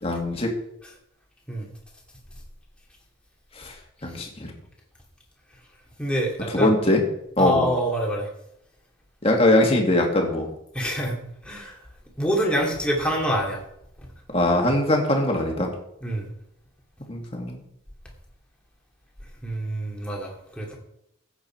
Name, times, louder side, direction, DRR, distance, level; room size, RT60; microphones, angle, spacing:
voice 1, 0.0-0.5 3.6-3.7 4.0-4.5 6.5-7.0 7.4-7.7 9.2-10.5 14.3-15.7 17.1-17.6, left 1 dB, 30° left, 1 dB, 2.2 m, -21 dB
voice 2, 6.0-6.7 7.4-8.3 10.7-11.2 11.4-11.8 12.2-13.6 14.0-14.1 16.0-16.3 19.4-20.8, equal, 5° left, -2 dB, 2.5 m, -26 dB
15.0 x 8.3 x 4.5 m, 0.79 s
head